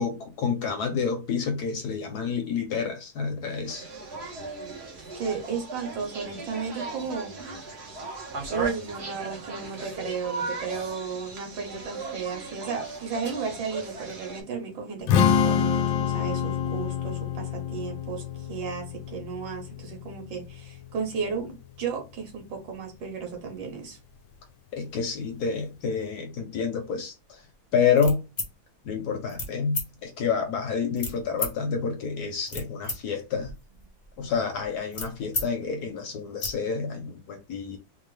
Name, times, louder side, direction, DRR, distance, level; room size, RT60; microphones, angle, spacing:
voice 1, 0.0-3.8 24.7-27.4 27.7-28.2 28.8-33.5 34.2-37.8, left 6 dB, 65° left, 1.1 m, -28 dB
sound 1, 3.7-14.4, right 3 dB, 45° right, 0.9 m, -37 dB
voice 2, 5.2-7.7 8.5-24.0, right 5 dB, 80° right, 1.8 m, -34 dB
Strum, 15.1-21.3, left 8 dB, 90° left, 1.3 m, -27 dB
sound 2, 28.0-28.5 29.3-29.5 29.7-29.9 31.0-31.5 32.2-33.0 33.3-35.5 35.8-35.9 36.2-36.5, left 2 dB, 35° left, 0.8 m, -33 dB
3.7 x 2.3 x 3.2 m
omnidirectional pair, 2.0 m